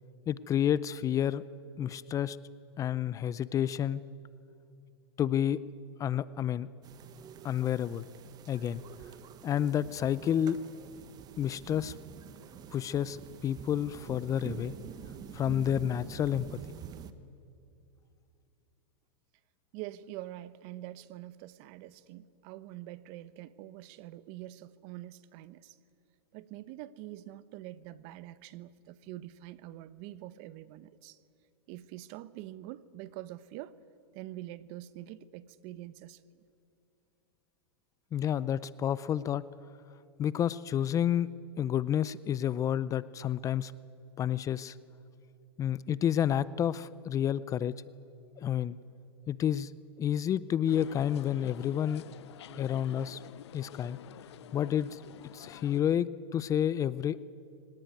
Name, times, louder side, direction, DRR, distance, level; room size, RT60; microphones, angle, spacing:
voice 1, 0.3-1.4 1.8-2.4 2.8-4.0 5.2-5.6 6.0-6.7 7.4-8.0 8.5-8.8 9.4-10.6 11.4-11.9 12.7-14.7 15.3-16.6 38.1-39.4 40.2-41.3 41.6-43.7 44.2-44.8 45.6-47.7 48.4-48.8 49.3-49.7 50.0-52.0 52.6-53.2 53.5-54.0 54.5-55.0 55.3-57.2, left 10 dB, 25° left, 0.5 m, -30 dB
sound 1, 6.8-17.1, right 8 dB, 30° right, 1.2 m, -47 dB
voice 2, 19.7-25.8 26.3-31.2 31.7-33.7 34.1-36.4, right 14 dB, 45° right, 0.9 m, -45 dB
sound 2, 50.7-55.8, left 12 dB, 75° left, 0.6 m, -49 dB
23.5 x 18.5 x 9.3 m
hypercardioid pair, 125°, 14 cm